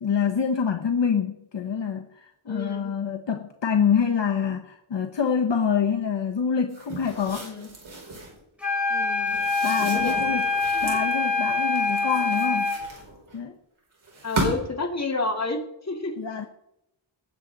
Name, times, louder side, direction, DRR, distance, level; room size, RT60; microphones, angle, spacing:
voice 1, 0.0-7.5 9.6-10.4 10.8-12.8 13.3-13.5 16.2-16.4, left 7 dB, 60° left, 4 dB, 1.1 m, -26 dB
voice 2, 2.5-2.9 7.4-7.7 8.9-9.4 9.8-10.4 10.7-10.9 14.2-16.1, left 3 dB, 30° left, 2 dB, 2.2 m, -31 dB
sound 1, 6.7-8.4 9.3-11.1 11.8-13.4 14.0-14.8, right 2 dB, 70° right, 5.0 m, -34 dB
sound 2, 8.6-12.9, left 3 dB, ahead, 5.0 m, -25 dB
19.0 x 8.2 x 4.0 m, 0.82 s
wide cardioid pair, 140°, 48 cm